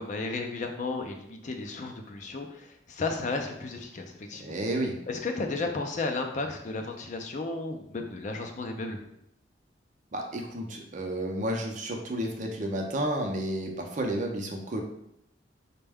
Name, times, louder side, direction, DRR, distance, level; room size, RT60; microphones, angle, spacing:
voice 1, 0.0-4.6 5.1-9.0, left 3 dB, 45° left, 3 dB, 0.4 m, -33 dB
voice 2, 4.4-5.0 10.1-14.8, right 1 dB, 45° right, 1 dB, 0.6 m, -31 dB
4.2 x 2.2 x 3.5 m, 0.77 s
head